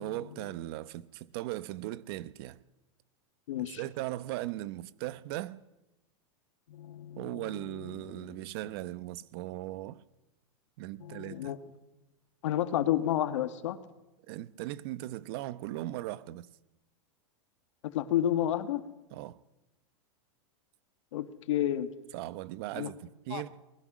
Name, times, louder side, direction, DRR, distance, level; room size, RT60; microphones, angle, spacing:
voice 1, 0.0-2.6 3.6-5.6 7.2-10.0 10.8-11.5 14.3-16.5 19.1-19.4 22.1-23.0 23.3-23.6, right 16 dB, 50° right, 0.9 m, -38 dB
voice 2, 3.5-3.8 6.7-8.4 11.0-11.6 12.4-13.8 17.8-18.8 21.1-21.9 22.7-22.9 23.3-23.4, left 12 dB, 70° left, 1.8 m, -31 dB
23.0 x 20.5 x 6.2 m
supercardioid pair, 150°, 16 cm